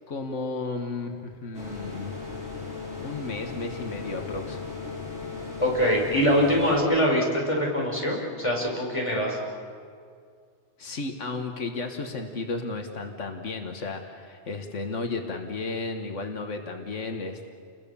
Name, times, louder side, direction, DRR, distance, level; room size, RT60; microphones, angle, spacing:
voice 1, 0.1-2.1 3.0-4.6 10.8-17.5, left 3 dB, 85° left, 5 dB, 1.8 m, -33 dB
sound 1, 1.5-6.8, left 4 dB, 65° left, 5.0 m, -37 dB
voice 2, 5.6-9.4, equal, 25° left, -2 dB, 5.2 m, -23 dB
30.0 x 22.0 x 7.1 m, 2.2 s
omnidirectional pair, 1.2 m